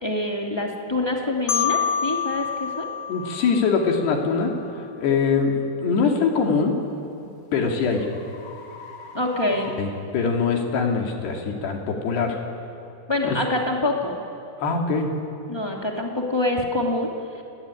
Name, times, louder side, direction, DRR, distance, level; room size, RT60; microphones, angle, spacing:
voice 1, 0.0-2.9 9.1-9.7 13.1-14.2 15.5-17.1, left 2 dB, 15° left, -1 dB, 0.9 m, -25 dB
Marimba xylophone, 1.5-4.3, left 8 dB, 90° left, 4.0 m, -27 dB
sound 1, 1.9-2.0 2.5-2.7 3.3-3.6 6.2-10.7, left 5 dB, 40° left, 2.7 m, -44 dB
voice 2, 3.1-6.7 7.5-8.1 9.8-12.4 13.2-13.4 14.6-15.1, left 5 dB, 65° left, 1 dB, 4.6 m, -23 dB
29.0 x 18.5 x 9.9 m, 2.7 s
omnidirectional pair, 5.2 m